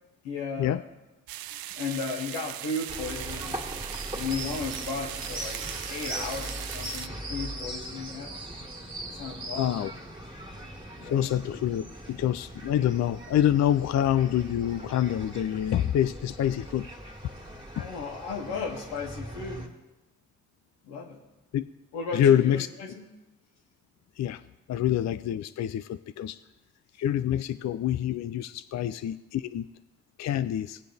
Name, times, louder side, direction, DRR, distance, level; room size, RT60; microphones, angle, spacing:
voice 1, 0.2-0.8 1.7-3.6 4.1-8.4 9.1-9.8 11.0-11.3 12.7-12.8 17.4-19.7 20.8-21.2 21.9-23.0, left 4 dB, 85° left, 1 dB, 1.5 m, -35 dB
sound 1, 1.3-7.1, right 13 dB, 65° right, 0.5 m, -39 dB
sound 2, 2.9-19.7, right 1 dB, 10° right, 2.1 m, -40 dB
sound 3, 7.6-17.9, equal, 10° left, 1.3 m, -51 dB
voice 2, 9.6-9.9 11.0-16.9 17.8-17.9 21.5-21.6 22.1-22.7 24.2-24.4 24.7-26.4 27.0-29.6 30.2-30.8, left 10 dB, 45° left, 13 dB, 0.4 m, -26 dB
17.5 x 7.6 x 3.5 m, 1.0 s
hypercardioid pair, 45°, 38 cm